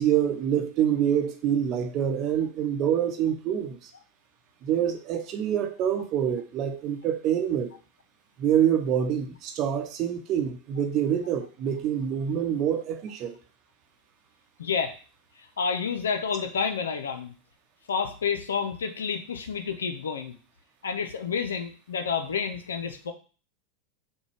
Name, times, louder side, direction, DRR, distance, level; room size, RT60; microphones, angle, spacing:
voice 1, 0.0-3.9 4.6-7.7 8.4-13.4, right 9 dB, 45° right, 6 dB, 0.8 m, -26 dB
voice 2, 14.6-14.9 15.6-17.3 17.9-20.3 20.8-23.1, left 6 dB, 80° left, 7 dB, 0.5 m, -29 dB
6.0 x 2.2 x 3.4 m, 0.37 s
hypercardioid pair, 90°, 0 cm